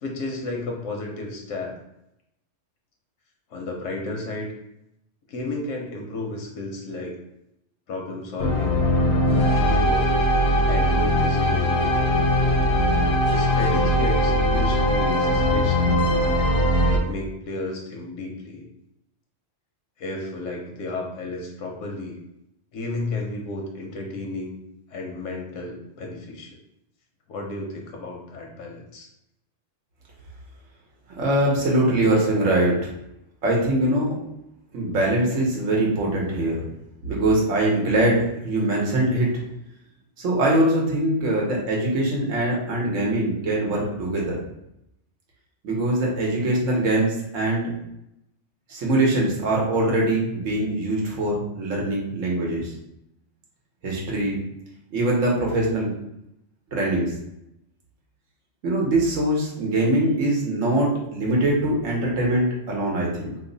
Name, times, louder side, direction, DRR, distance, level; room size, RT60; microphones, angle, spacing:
voice 1, 0.0-1.7 3.5-4.5 5.3-7.2 7.9-8.8 9.6-10.1 10.7-12.0 13.3-16.0 16.8-18.7 20.0-22.2 22.7-24.5 24.9-26.6 27.3-29.1, left 2 dB, 85° left, 0 dB, 1.0 m, -33 dB
sound 1, 8.4-17.0, equal, 65° left, 0.7 m, -20 dB
voice 2, 31.2-32.8 33.4-34.2 34.7-36.6 37.0-39.3 40.2-44.4 45.6-47.7 48.7-52.7 53.8-54.4 54.9-55.9 56.7-57.1 58.6-63.3, right 1 dB, 90° right, -3 dB, 1.2 m, -22 dB
3.0 x 2.0 x 3.8 m, 0.83 s
omnidirectional pair, 1.3 m